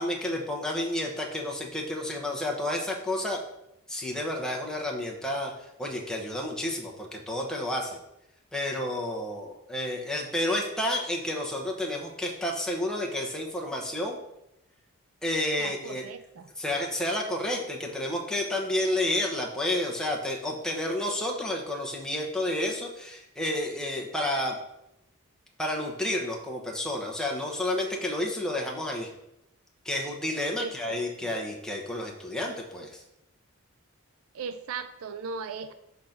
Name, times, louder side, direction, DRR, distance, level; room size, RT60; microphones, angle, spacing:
voice 1, 0.0-3.4 3.9-8.0 8.5-14.2 15.2-16.0 16.6-24.6 25.6-29.1 29.8-33.0, left 1 dB, 5° left, -1 dB, 0.9 m, -30 dB
voice 2, 15.6-16.5 30.6-31.3 34.3-35.7, right 5 dB, 70° right, 10 dB, 0.4 m, -38 dB
5.1 x 3.9 x 5.8 m, 0.84 s
head